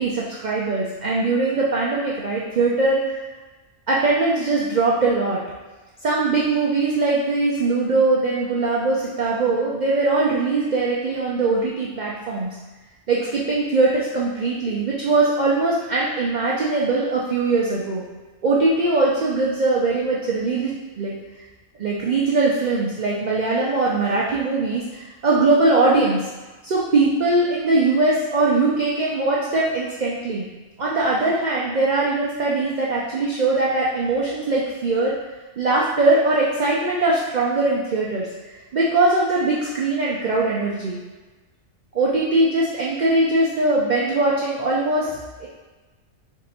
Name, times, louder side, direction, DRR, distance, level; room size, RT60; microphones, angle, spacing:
voice 1, 0.0-3.0 3.9-5.4 6.0-12.5 13.1-18.0 18.4-21.1 21.8-26.3 26.6-30.5 30.8-35.1 35.6-38.3 38.7-41.0 41.9-45.5, right 3 dB, 75° right, -5 dB, 0.4 m, -21 dB
3.6 x 2.6 x 4.1 m, 1.2 s
omnidirectional pair, 1.4 m